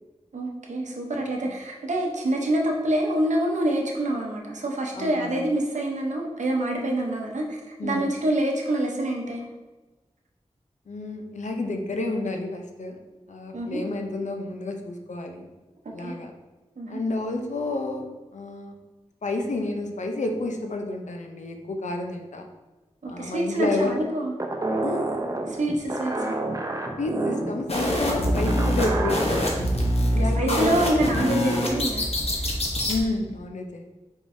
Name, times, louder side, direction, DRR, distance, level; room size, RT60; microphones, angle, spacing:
voice 1, 0.3-9.4 13.5-13.8 16.0-16.2 16.8-17.0 23.0-24.3 25.5-26.4 30.0-32.0 32.4-32.5, right 1 dB, 80° right, 0 dB, 0.8 m, -26 dB
voice 2, 4.9-5.4 7.8-8.1 10.9-13.0 13.3-15.4 15.9-16.3 16.9-18.1 18.3-18.7 19.2-22.5 23.0-23.9 24.8-25.1 27.0-29.6 30.1-30.8 32.9-33.8, left 2 dB, 80° left, 3 dB, 0.6 m, -30 dB
sound 1, 24.4-29.5, right 2 dB, 30° right, 0.6 m, -29 dB
sound 2, 27.7-33.0, equal, 55° left, 0.9 m, -24 dB
4.8 x 3.7 x 2.6 m, 1.2 s
wide cardioid pair, 55°, 12 cm